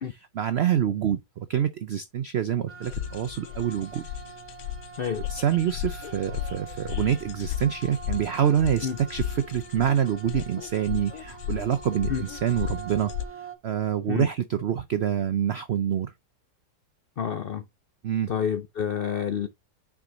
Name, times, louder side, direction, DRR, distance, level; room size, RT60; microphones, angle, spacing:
voice 1, 0.0-4.1 5.3-13.1 13.6-16.1 18.0-18.3, right 9 dB, 90° right, 0.5 m, -26 dB
sound 1, 2.7-13.6, right 6 dB, 10° right, 1.1 m, -45 dB
sound 2, 2.8-13.2, left 11 dB, 70° left, 1.0 m, -35 dB
voice 2, 17.2-17.6 18.3-19.5, left 8 dB, 85° left, 0.5 m, -28 dB
6.1 x 4.6 x 3.8 m
omnidirectional pair, 1.8 m